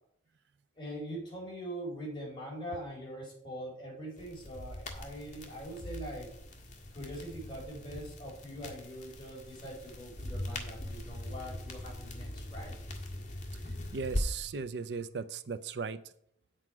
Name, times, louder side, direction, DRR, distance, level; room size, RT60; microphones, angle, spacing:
voice 1, 0.8-6.3 6.9-12.7, equal, 25° left, -2 dB, 4.0 m, -43 dB
sound 1, 4.2-14.2, left 1 dB, 45° left, 1.7 m, -41 dB
voice 2, 13.9-16.0, right 5 dB, 70° right, 12 dB, 0.5 m, -37 dB
8.8 x 7.6 x 4.7 m, 0.68 s
head